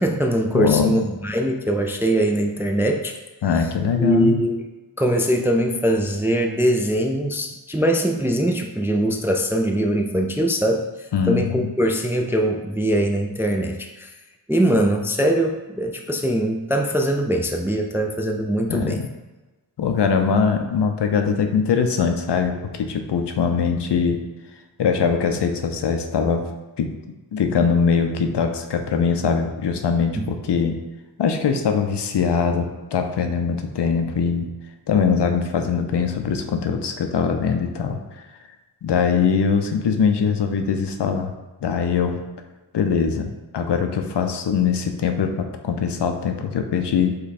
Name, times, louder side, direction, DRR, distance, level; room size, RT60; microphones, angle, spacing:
voice 1, 0.0-3.2 4.0-4.7 5.0-14.1 14.5-19.0 30.2-30.3, right 1 dB, 5° right, 3 dB, 0.3 m, -22 dB
voice 2, 0.5-1.0 3.4-4.4 11.1-11.7 18.7-19.1 19.8-24.2 24.8-26.4 26.8-26.9 27.3-30.8 31.2-34.5 34.9-38.2 38.8-41.3 41.6-42.2 42.7-47.2, left 6 dB, 65° left, 6 dB, 0.6 m, -22 dB
5.2 x 2.3 x 4.1 m, 1.2 s
wide cardioid pair, 65°, 44 cm